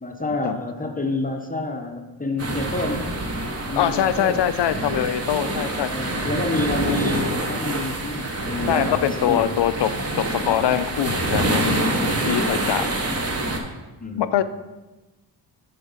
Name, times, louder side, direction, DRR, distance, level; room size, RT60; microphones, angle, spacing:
voice 1, 0.0-3.1 3.7-4.5 5.9-9.6 14.0-14.4, left 2 dB, 20° left, 3 dB, 0.6 m, -29 dB
sound 1, 2.4-13.6, right 1 dB, 35° right, 1.0 m, -26 dB
voice 2, 3.8-5.9 8.7-9.9 10.3-12.9 14.2-14.4, left 11 dB, 65° left, 13 dB, 0.5 m, -23 dB
7.3 x 3.9 x 5.5 m, 1.1 s
cardioid pair, 100°, 45 cm